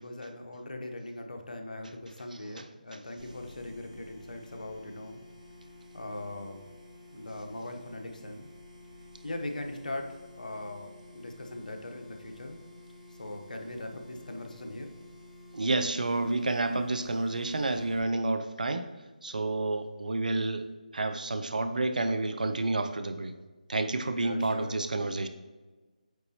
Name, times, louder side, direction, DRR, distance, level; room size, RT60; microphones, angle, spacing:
voice 1, 0.0-5.2 5.9-6.7 7.1-8.5 9.2-12.6 13.1-14.9 24.2-24.8, left 1 dB, 70° left, 4 dB, 0.9 m, -40 dB
sound 1, 3.2-18.0, left 2 dB, 50° right, 1.4 m, -51 dB
voice 2, 15.5-18.9 19.2-20.7 20.9-23.3 23.7-25.3, right 2 dB, 70° right, 9 dB, 0.6 m, -29 dB
8.1 x 4.1 x 2.9 m, 1.3 s
figure-of-eight pair, 155°, 5 cm